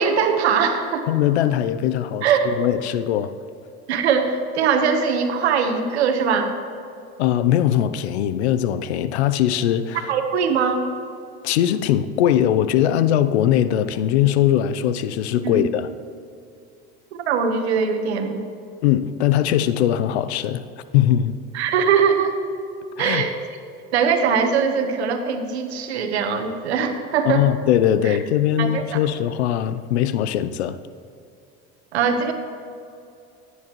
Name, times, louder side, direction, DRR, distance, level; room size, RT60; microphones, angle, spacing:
voice 1, 0.0-1.1 2.2-2.5 3.9-6.5 10.1-10.8 15.4-15.7 17.1-18.4 21.5-22.4 23.0-23.3 23.9-27.4 28.0-28.2 28.6-29.0 31.9-32.3, right 6 dB, 85° right, 6 dB, 1.2 m, -21 dB
voice 2, 1.1-3.3 7.2-10.1 11.4-15.9 18.8-20.6 20.9-21.4 23.0-23.3 27.3-30.8, left 11 dB, 85° left, 13 dB, 0.6 m, -20 dB
16.0 x 9.5 x 3.1 m, 2.5 s
hypercardioid pair, 85°, 32 cm